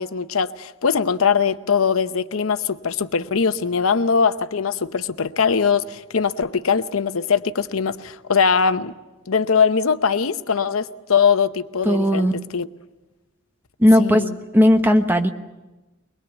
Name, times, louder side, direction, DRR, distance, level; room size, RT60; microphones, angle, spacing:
voice 1, 0.0-8.9 9.3-12.7 14.0-14.4, left 6 dB, 90° left, 12 dB, 0.8 m, -21 dB
voice 2, 11.8-12.4 13.8-14.2 14.5-15.3, equal, 10° right, 6 dB, 1.1 m, -16 dB
23.0 x 21.5 x 8.2 m, 1.1 s
head